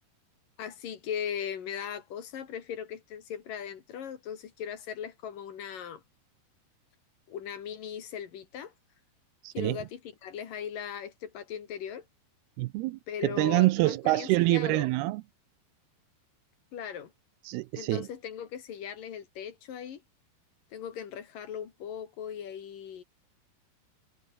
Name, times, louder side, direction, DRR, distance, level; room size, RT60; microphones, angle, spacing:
voice 1, 0.6-6.0 7.3-8.7 9.5-12.0 13.1-14.9 16.7-17.1 17.8-20.0 20.7-23.0, left 8 dB, 60° left, 3.5 m, -38 dB
voice 2, 9.4-9.8 12.6-15.2 17.4-18.1, right 20 dB, 85° right, 2.5 m, -26 dB
omnidirectional pair, 4.8 m